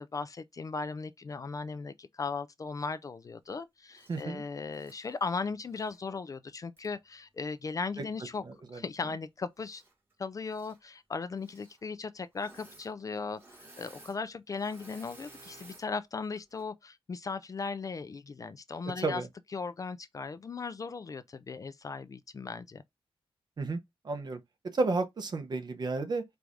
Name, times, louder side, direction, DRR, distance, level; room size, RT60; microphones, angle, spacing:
voice 1, 0.0-8.4 8.7-9.8 10.2-19.2 19.5-22.8, left 4 dB, 35° left, 0.3 m, -37 dB
Engine / Mechanisms, 3.9-4.2 4.7-6.0 6.8-6.9 9.6-10.1 10.4-10.8 11.3-11.8 12.3-12.9 13.2-15.9 16.4-16.6, right 2 dB, 20° right, 1.5 m, -55 dB
voice 2, 4.1-4.4 8.5-8.8 19.0-19.3 23.6-23.8 24.0-24.4 24.7-26.2, right 3 dB, 45° right, 0.9 m, -32 dB
4.6 x 2.5 x 3.5 m
wide cardioid pair, 130°, 10 cm